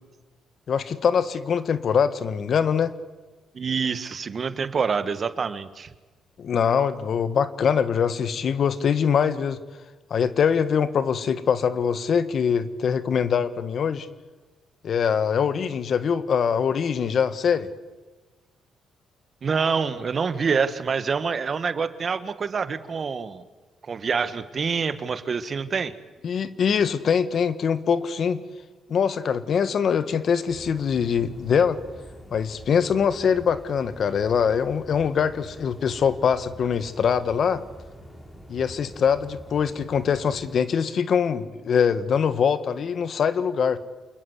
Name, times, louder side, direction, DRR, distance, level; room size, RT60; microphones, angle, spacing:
voice 1, 0.7-2.9 6.4-9.6 10.1-14.1 14.8-17.7 26.2-28.4 28.9-31.8 32.3-37.6 38.5-43.8, left 7 dB, 55° left, 13 dB, 1.5 m, -23 dB
voice 2, 3.5-5.9 19.4-23.4 23.8-25.9, right 5 dB, 45° right, 12 dB, 1.6 m, -26 dB
sound 1, 30.5-40.6, equal, 20° left, 4.9 m, -45 dB
27.0 x 21.0 x 8.1 m, 1.3 s
cardioid pair, 90°, 0 cm